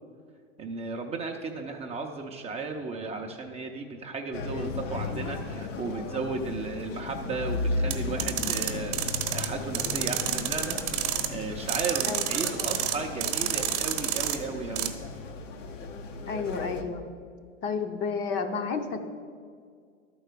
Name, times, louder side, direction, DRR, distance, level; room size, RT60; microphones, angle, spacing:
voice 1, 0.6-14.9, right 4 dB, 15° right, 2 dB, 0.5 m, -35 dB
sound 1, 4.3-16.8, left 3 dB, 80° left, 1.0 m, -35 dB
sound 2, 7.9-9.5 9.7-11.3 11.7-13.0 13.2-14.4 14.8-14.9, right 12 dB, 45° right, 1.0 m, -29 dB
voice 2, 15.9-17.0 17.6-19.0, left 5 dB, 30° left, 6 dB, 0.7 m, -31 dB
11.0 x 4.6 x 6.6 m, 2.1 s
hypercardioid pair, 115°, 37 cm